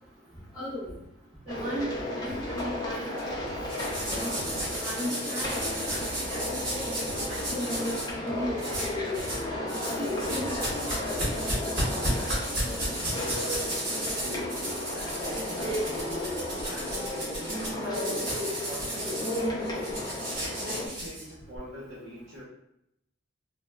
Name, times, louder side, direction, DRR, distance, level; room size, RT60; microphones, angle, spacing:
voice 1, 0.5-0.9 1.5-3.1 3.3-3.5 4.0-4.4 4.8-5.6 5.9-6.0 6.3-6.4 7.3-7.9 8.2-8.6 8.9-9.2 9.8-10.5, equal, 10° right, -15 dB, 1.0 m, -35 dB
sound 1, 1.5-20.9, left 1 dB, 20° left, 0.6 m, -34 dB
sound 2, 2.3-11.9, right 1 dB, 90° right, 0.5 m, -45 dB
sound 3, 3.7-8.1 8.6-9.4 9.7-21.6, right 1 dB, 50° right, 1.2 m, -34 dB
voice 2, 12.1-13.8 14.3-16.1 16.6-19.4 20.2-22.4, equal, 65° right, -6 dB, 0.8 m, -44 dB
4.0 x 2.1 x 2.3 m, 0.81 s
head